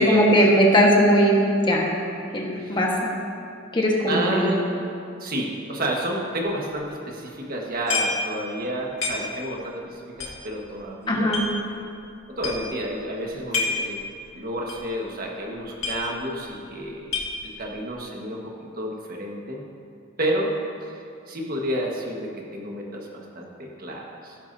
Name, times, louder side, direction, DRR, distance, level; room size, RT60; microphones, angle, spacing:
voice 1, 0.0-1.4 1.6-1.9 2.3-2.9 3.7-4.5 11.1-11.4, equal, 20° left, -1 dB, 1.4 m, -19 dB
voice 2, 4.1-4.7 5.2-11.4 12.3-14.0 14.3-17.2 17.6-18.4 18.8-19.6 20.2-20.5 20.8-21.0 21.3-24.4, right 1 dB, 45° right, -1 dB, 1.5 m, -30 dB
sound 1, 7.9-8.3 8.6-8.7 9.0-9.6 10.2-11.5 12.0-12.1 12.4-12.8 13.3-13.9 14.2-14.3 14.7-14.9 15.2-15.3 15.5-16.4 16.7-17.7, left 3 dB, 70° left, 2.0 m, -28 dB
17.0 x 10.5 x 2.7 m, 2.5 s
head